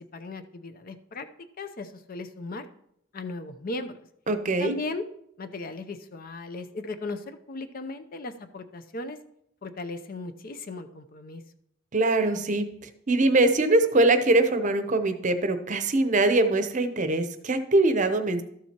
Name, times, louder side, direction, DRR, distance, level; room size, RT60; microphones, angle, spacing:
voice 1, 0.1-1.3 1.6-2.7 3.1-4.0 4.6-5.0 5.4-9.2 9.6-11.4, left 2 dB, 45° left, 9 dB, 0.6 m, -37 dB
voice 2, 4.3-4.7 11.9-18.4, right 2 dB, 40° right, 9 dB, 0.7 m, -23 dB
13.0 x 7.4 x 2.9 m, 0.74 s
head